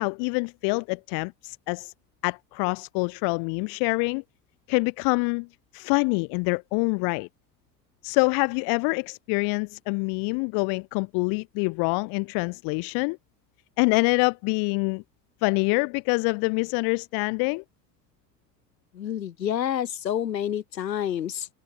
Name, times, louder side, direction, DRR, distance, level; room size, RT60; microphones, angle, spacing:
voice 1, 0.0-1.9 2.2-4.2 4.7-5.5 5.7-7.3 8.0-13.2 13.8-15.0 15.4-17.6, left 35 dB, 50° left, 0.6 m, -25 dB
voice 2, 18.9-21.5, left 10 dB, 80° left, 1.7 m, -28 dB
figure-of-eight pair, 65°, 49 cm